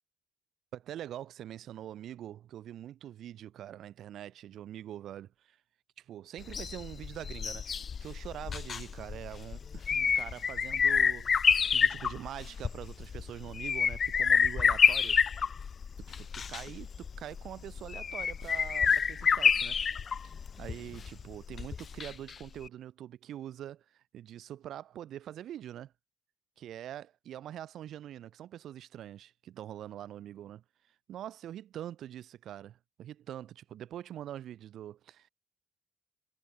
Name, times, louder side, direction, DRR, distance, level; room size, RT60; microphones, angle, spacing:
voice 1, 0.7-5.6 6.0-15.2 16.0-19.8 20.1-25.9 26.6-30.6 31.1-35.3, right 11 dB, 75° right, 4.8 m, -44 dB
sound 1, 6.4-22.3 22.6-22.7, left 6 dB, 45° left, 0.6 m, -29 dB
cardioid pair, 90°, 0 cm